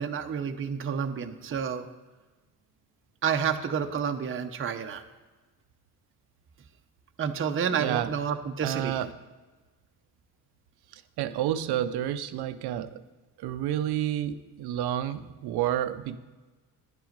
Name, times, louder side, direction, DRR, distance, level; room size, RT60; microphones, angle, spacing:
voice 1, 0.0-1.9 3.2-5.0 7.2-9.0, right 7 dB, 35° right, 5 dB, 0.7 m, -29 dB
voice 2, 7.7-8.1 8.6-9.1 10.9-13.0 13.4-16.2, right 11 dB, 90° right, 12 dB, 0.6 m, -30 dB
10.5 x 7.7 x 5.2 m, 1.3 s
cardioid pair, 90°, 37 cm